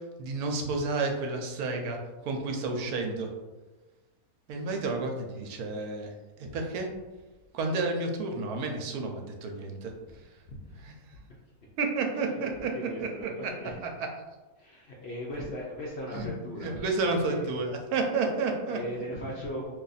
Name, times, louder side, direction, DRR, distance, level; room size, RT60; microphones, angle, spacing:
voice 1, 0.2-2.0 2.2-3.3 4.5-6.1 6.4-6.9 7.5-9.9 10.8-10.9 11.8-12.7 13.0-13.5 13.8-13.9 16.1-16.3 16.6-18.8, right 3 dB, 75° right, 3 dB, 1.1 m, -31 dB
voice 2, 10.5-10.8 12.3-12.4 12.7-13.7 14.6-16.8 17.1-17.6 18.7-19.7, equal, 70° left, -3 dB, 0.6 m, -38 dB
2.7 x 2.5 x 3.9 m, 1.2 s
omnidirectional pair, 1.6 m